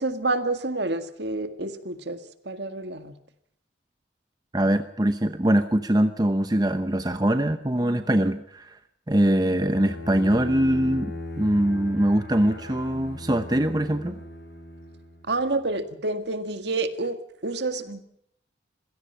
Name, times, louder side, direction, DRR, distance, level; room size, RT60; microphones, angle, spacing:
voice 1, 0.0-2.2 2.5-3.1 15.3-17.2 17.4-18.1, right 2 dB, 60° right, 9 dB, 1.9 m, -28 dB
voice 2, 4.5-8.8 9.1-14.2, right 1 dB, 20° right, 9 dB, 0.8 m, -23 dB
Bowed string instrument, 9.6-15.4, left 1 dB, 65° left, 7.4 m, -39 dB
26.5 x 17.0 x 5.7 m, 0.71 s
head